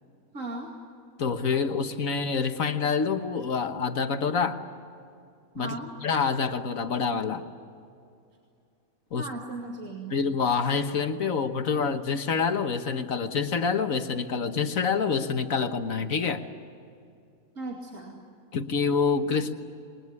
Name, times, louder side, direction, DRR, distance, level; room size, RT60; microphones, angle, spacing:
voice 1, 0.3-0.8 5.5-5.9 9.1-10.2 17.6-18.2, right 2 dB, 65° right, -1 dB, 2.9 m, -37 dB
voice 2, 1.2-4.6 5.5-5.7 6.0-7.4 9.1-9.3 10.1-16.4 18.5-19.5, left 5 dB, 70° left, 7 dB, 1.6 m, -27 dB
28.0 x 22.0 x 9.6 m, 2.5 s
omnidirectional pair, 1.5 m